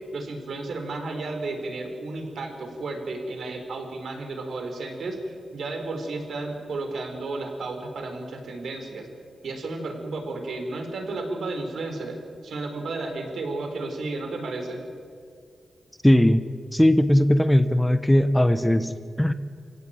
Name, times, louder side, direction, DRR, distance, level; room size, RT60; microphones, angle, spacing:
voice 1, 0.1-9.1 9.4-14.8, right 2 dB, 75° right, 4 dB, 4.6 m, -33 dB
voice 2, 16.0-16.4 16.7-19.3, left 1 dB, 5° left, 11 dB, 0.8 m, -19 dB
28.0 x 16.5 x 9.1 m, 2.3 s
wide cardioid pair, 130°, 0 cm